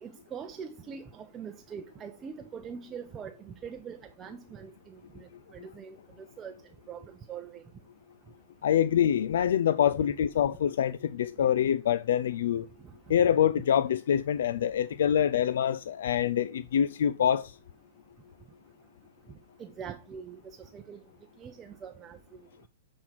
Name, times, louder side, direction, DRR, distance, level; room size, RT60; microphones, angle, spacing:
voice 1, 0.0-5.0 5.5-6.0 6.4-6.5 6.9-7.6 19.6-21.0 21.4-22.2, right 7 dB, 25° right, 0.6 m, -43 dB
voice 2, 8.6-12.7 13.1-17.5, left 9 dB, 75° left, 0.3 m, -25 dB
7.7 x 4.2 x 4.5 m
hypercardioid pair, 125°, 0 cm